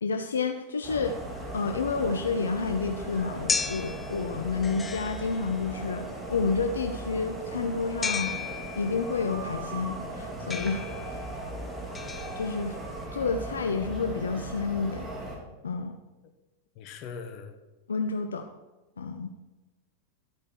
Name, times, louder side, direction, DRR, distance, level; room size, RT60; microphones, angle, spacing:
voice 1, 0.0-1.2 1.5-8.4 8.8-11.2 12.4-12.8 13.1-15.1 15.6-16.0 17.9-18.5 19.0-19.3, left 4 dB, 70° left, 6 dB, 0.6 m, -30 dB
sound 1, 0.8-15.4, right 1 dB, 20° right, 3.1 m, -38 dB
sound 2, 1.1-13.1, left 5 dB, 15° left, 0.7 m, -37 dB
voice 2, 16.7-17.5, left 5 dB, 40° left, 6 dB, 1.4 m, -40 dB
12.5 x 8.6 x 4.7 m, 1.1 s
figure-of-eight pair, 90°, 0 cm